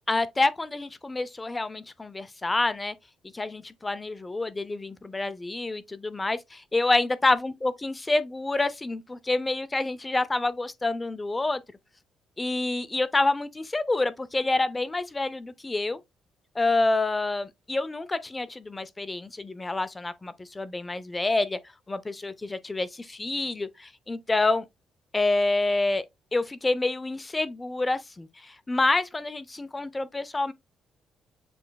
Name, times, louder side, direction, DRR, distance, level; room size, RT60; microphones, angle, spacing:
voice 1, 0.1-2.9 3.3-11.6 12.4-16.0 16.6-21.6 21.9-24.6 25.1-26.0 26.3-30.5, left 2 dB, 20° left, 0.5 m, -27 dB
6.9 x 3.1 x 2.2 m
cardioid pair, 90°, 0 cm